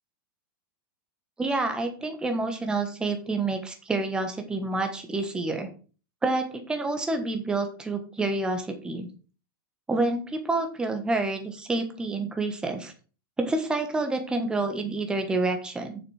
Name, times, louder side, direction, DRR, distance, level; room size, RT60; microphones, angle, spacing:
voice 1, 1.4-5.7 6.2-9.1 9.9-12.9 13.4-16.0, right 2 dB, 5° right, 5 dB, 1.2 m, -28 dB
7.3 x 6.3 x 4.8 m, 0.37 s
supercardioid pair, 165°, 12 cm